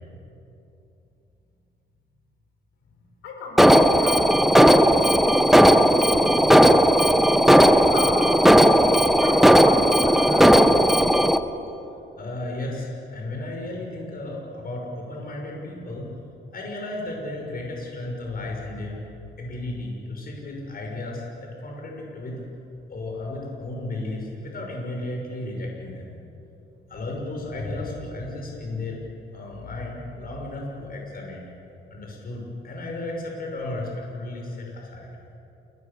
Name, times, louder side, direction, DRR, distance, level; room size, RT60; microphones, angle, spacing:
voice 1, 3.2-7.2 7.7-10.7, left 3 dB, 90° left, 2 dB, 5.7 m, -37 dB
Alarm, 3.6-11.4, equal, ahead, 1.1 m, -16 dB
voice 2, 12.2-16.1 16.5-19.0 19.4-22.4 22.9-26.1 26.9-29.0 29.3-31.5 31.9-35.1, left 2 dB, 50° left, -1 dB, 6.1 m, -34 dB
30.0 x 20.0 x 6.9 m, 2.9 s
cardioid pair, 90°, 20 cm